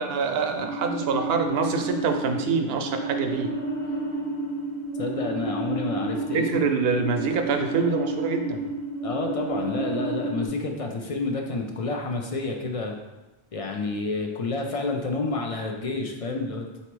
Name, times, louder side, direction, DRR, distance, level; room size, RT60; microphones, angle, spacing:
voice 1, 0.0-3.5 6.3-8.6, right 5 dB, 75° right, 6 dB, 0.8 m, -26 dB
sound 1, 0.6-10.5, right 2 dB, 70° left, 1.0 m, -30 dB
voice 2, 5.0-6.7 9.0-12.9 13.5-16.7, left 3 dB, 45° left, 2 dB, 0.5 m, -29 dB
4.1 x 2.8 x 4.5 m, 1.1 s
omnidirectional pair, 1.0 m